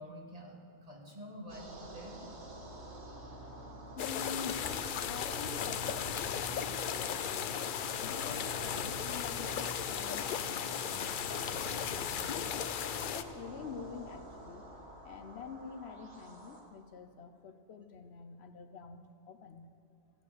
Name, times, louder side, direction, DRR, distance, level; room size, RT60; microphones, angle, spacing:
voice 1, 0.0-2.3, equal, 35° right, -1 dB, 1.8 m, -48 dB
sound 1, 1.5-16.6, right 1 dB, 80° right, 1.8 m, -47 dB
voice 2, 4.0-7.7 8.0-12.7 13.1-14.6 15.0-19.7, left 5 dB, 75° left, 9 dB, 1.0 m, -47 dB
sound 2, 4.0-13.2, left 8 dB, 60° left, 0.6 m, -36 dB
14.5 x 9.0 x 6.7 m, 2.4 s
omnidirectional pair, 1.1 m